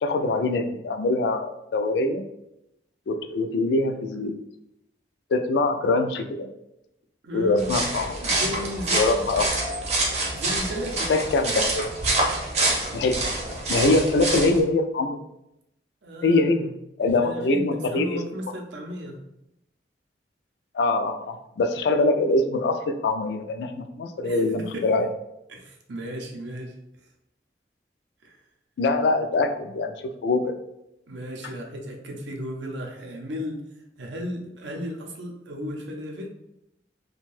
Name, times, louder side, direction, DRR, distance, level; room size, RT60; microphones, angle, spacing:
voice 1, 0.0-2.2 3.1-4.4 5.3-6.5 7.3-8.2 8.9-9.5 11.1-11.9 12.9-13.2 13.7-15.2 16.2-16.7 17.0-18.2 20.7-25.1 28.8-30.5, left 2 dB, 70° left, 7 dB, 0.3 m, -23 dB
voice 2, 7.2-7.8 8.2-9.4 10.3-11.1 16.0-16.5 17.0-19.2 24.2-25.0 25.5-26.8 28.2-28.4 31.1-33.6 34.0-36.3, equal, 90° right, 2 dB, 0.5 m, -35 dB
sound 1, 7.6-14.6, right 2 dB, 40° right, 0.6 m, -26 dB
2.6 x 2.2 x 3.1 m, 0.85 s
head